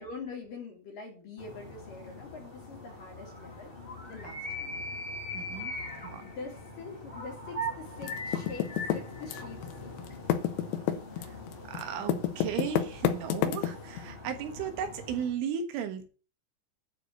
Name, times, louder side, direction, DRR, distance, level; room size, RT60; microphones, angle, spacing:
voice 1, 0.0-3.7 4.1-4.7 6.2-9.9, left 4 dB, 50° left, 1 dB, 3.6 m, -44 dB
sound 1, 1.4-15.3, left 1 dB, 30° left, 0.9 m, -41 dB
voice 2, 5.3-5.7 6.0-6.2 11.2-11.4 11.7-16.0, right 8 dB, 80° right, 7 dB, 3.9 m, -35 dB
Typing, 8.0-9.7 10.0-14.0, left 11 dB, 85° left, 3.8 m, -29 dB
11.0 x 5.1 x 7.8 m, 0.35 s
omnidirectional pair, 5.7 m